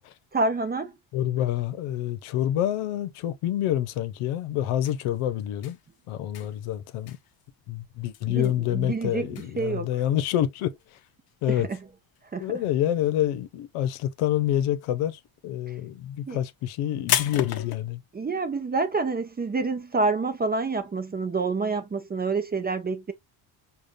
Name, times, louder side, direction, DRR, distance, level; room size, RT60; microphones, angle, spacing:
voice 1, 0.3-1.0 8.3-9.3 9.6-9.9 11.5-11.8 12.3-12.6 16.3-16.4 18.1-23.1, right 3 dB, 20° right, 0.5 m, -27 dB
voice 2, 1.1-5.8 6.1-7.2 7.7-11.0 11.4-11.7 12.4-18.0, left 12 dB, 85° left, 0.8 m, -27 dB
sound 1, 4.7-12.6 12.9-13.6 13.8-17.8, left 11 dB, 50° left, 0.7 m, -34 dB
5.0 x 2.4 x 2.6 m
cardioid pair, 105°, 49 cm